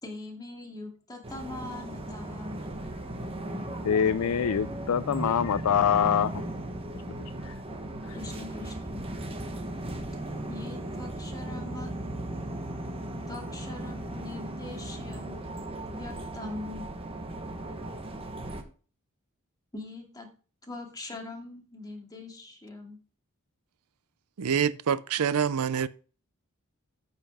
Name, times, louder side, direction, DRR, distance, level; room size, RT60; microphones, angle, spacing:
voice 1, 0.0-2.6 8.1-9.0 10.5-11.9 13.3-15.4 15.9-16.9 19.7-20.3 20.6-23.0, left 2 dB, 15° left, 2.3 m, -42 dB
sound 1, 1.2-18.6, right 1 dB, 25° right, 1.3 m, -37 dB
voice 2, 3.8-6.4 7.4-7.5 8.1-8.2, left 8 dB, 80° left, 0.4 m, -25 dB
voice 3, 24.4-25.9, right 7 dB, 75° right, 0.5 m, -26 dB
8.9 x 5.6 x 6.1 m
head